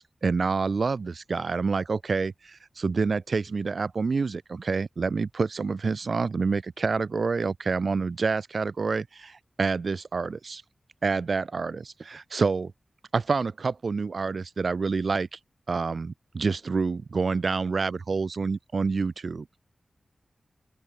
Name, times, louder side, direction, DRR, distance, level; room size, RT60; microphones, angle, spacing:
voice 1, 0.0-10.6 11.0-12.7 13.1-15.4 15.7-19.5, right 4 dB, 65° right, 3.6 m, -27 dB
open air
wide cardioid pair, 90°, 0 cm